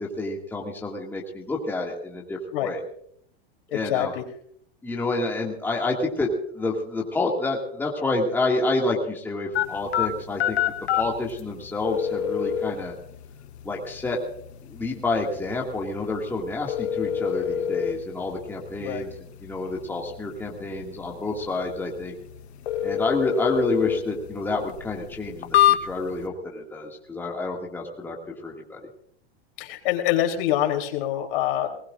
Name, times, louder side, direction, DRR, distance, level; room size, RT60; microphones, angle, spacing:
voice 1, 0.0-2.8 3.7-4.1 4.8-10.6 10.9-12.9 13.6-14.2 14.6-19.1 19.4-22.2 22.8-28.8, left 2 dB, 5° left, -2 dB, 2.1 m, -29 dB
voice 2, 3.7-4.1 18.8-19.1 29.6-31.7, left 12 dB, 60° left, 4 dB, 3.4 m, -25 dB
sound 1, 9.5-26.3, left 10 dB, 90° left, 1.2 m, -28 dB
20.5 x 20.0 x 2.5 m, 0.66 s
supercardioid pair, 150°, 32 cm